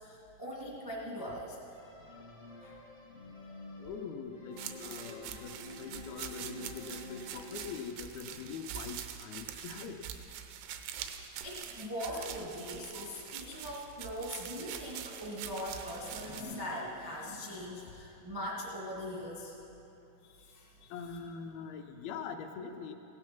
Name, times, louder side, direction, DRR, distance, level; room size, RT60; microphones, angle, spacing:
voice 1, 0.0-1.6 2.6-2.7 11.4-19.5 20.2-20.9, equal, 30° right, -4 dB, 0.4 m, -41 dB
sound 1, 1.7-7.7, left 1 dB, 60° left, 0.7 m, -48 dB
voice 2, 3.8-5.5 5.8-10.1 20.9-22.9, left 6 dB, 80° left, 5 dB, 2.4 m, -43 dB
sound 2, 4.6-16.4, right 9 dB, 90° right, 2.8 m, -44 dB
16.5 x 9.7 x 5.8 m, 2.9 s
omnidirectional pair, 4.6 m